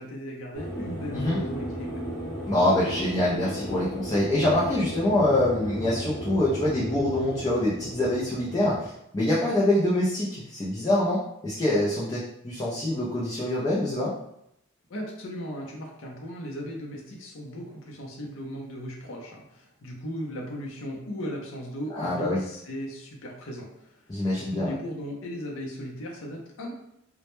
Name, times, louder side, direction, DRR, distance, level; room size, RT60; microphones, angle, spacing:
voice 1, 0.0-2.0 14.9-24.0 24.2-26.7, equal, 65° left, -1 dB, 0.5 m, -37 dB
sound 1, 0.5-8.9, equal, 5° right, 0.7 m, -35 dB
voice 2, 2.5-14.1 21.9-22.4 24.1-24.7, left 1 dB, 20° left, -8 dB, 0.4 m, -25 dB
2.1 x 2.0 x 2.9 m, 0.79 s
head